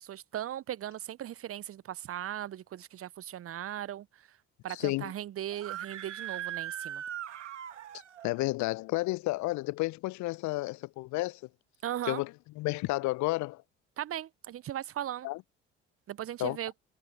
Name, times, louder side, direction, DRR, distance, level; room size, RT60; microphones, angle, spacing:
voice 1, 0.0-4.3 4.6-7.0 11.8-12.2 14.0-15.3 16.1-16.7, right 11 dB, 40° right, 0.9 m, -38 dB
voice 2, 4.7-5.1 8.2-11.4 12.1-12.3 12.6-13.6 15.2-15.4 16.4-16.6, left 20 dB, 55° left, 0.8 m, -31 dB
Screaming, 5.5-8.3, right 11 dB, 80° right, 1.6 m, -39 dB
figure-of-eight pair, 55°, 36 cm